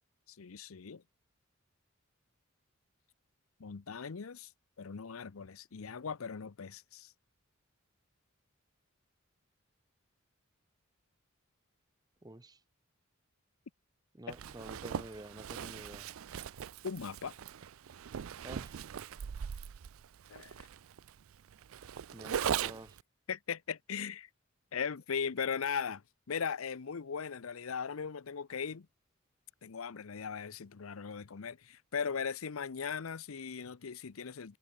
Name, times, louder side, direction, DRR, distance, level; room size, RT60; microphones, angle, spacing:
voice 1, 0.4-1.0 3.6-4.5 4.8-7.1 14.3-14.4 16.8-17.3 20.3-20.7 23.3-24.3 24.7-26.0 26.3-28.9 29.6-34.6, left 6 dB, 90° left, 0.7 m, -38 dB
voice 2, 12.2-12.6 14.1-16.1 18.4-18.8 22.1-23.0, right 1 dB, 20° right, 1.1 m, -48 dB
Zipper (clothing), 14.3-23.0, right 8 dB, 85° right, 0.4 m, -40 dB
head